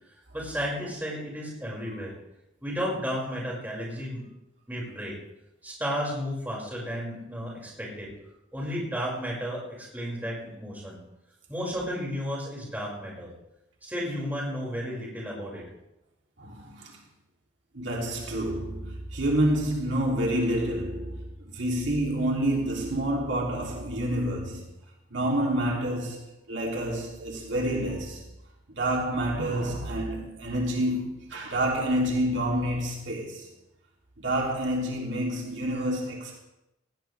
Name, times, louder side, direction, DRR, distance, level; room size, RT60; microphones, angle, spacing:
voice 1, 0.3-2.2 2.6-4.2 4.7-5.2 5.6-8.1 8.5-11.0 11.5-13.3 13.8-15.7, equal, 10° right, 5.7 m, -33 dB
voice 2, 16.4-16.9 17.7-21.2 21.4-24.6 25.1-26.2 26.5-28.2 28.7-33.4 34.2-36.4, right 1 dB, 65° right, 3.0 m, -28 dB
18.5 x 18.0 x 3.4 m
head